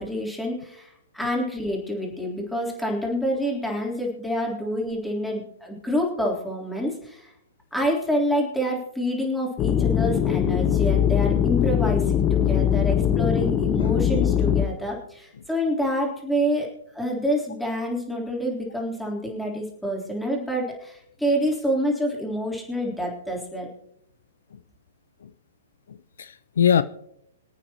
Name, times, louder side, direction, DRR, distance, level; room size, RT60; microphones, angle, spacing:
voice 1, 0.0-7.3 7.7-16.7 16.9-23.7, equal, ahead, -2 dB, 3.6 m, -27 dB
sound 1, 9.6-14.7, left 9 dB, 30° left, 1.0 m, -21 dB
voice 2, 25.9-26.8, left 8 dB, 70° left, 15 dB, 0.5 m, -23 dB
26.5 x 8.9 x 3.0 m, 0.77 s
hypercardioid pair, 120°, 0 cm